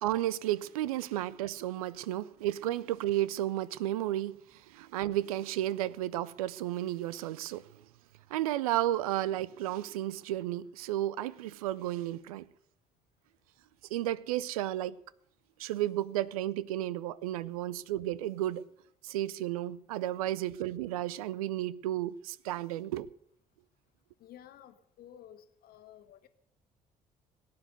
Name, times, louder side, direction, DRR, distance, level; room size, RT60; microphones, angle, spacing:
voice 1, 0.0-7.7 8.3-12.5 13.9-15.0 15.6-18.6 19.0-23.1, right 14 dB, 70° right, 0.5 m, -33 dB
voice 2, 24.2-26.3, left 10 dB, 55° left, 1.3 m, -53 dB
18.0 x 9.4 x 6.7 m
figure-of-eight pair, 50°, 19 cm